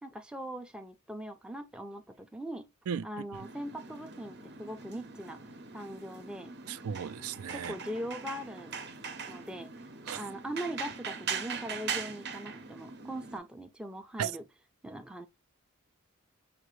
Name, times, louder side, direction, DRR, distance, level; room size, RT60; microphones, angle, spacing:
voice 1, 0.0-2.7 3.0-5.4 5.7-6.5 7.5-8.8 9.3-9.7 10.1-14.5 14.8-15.3, equal, 5° right, 0.4 m, -41 dB
sound 1, 3.3-13.4, right 6 dB, 50° right, 0.7 m, -41 dB
voice 2, 6.7-7.7 10.1-10.2 14.2-14.3, right 8 dB, 80° right, 0.4 m, -35 dB
5.7 x 2.4 x 3.1 m
head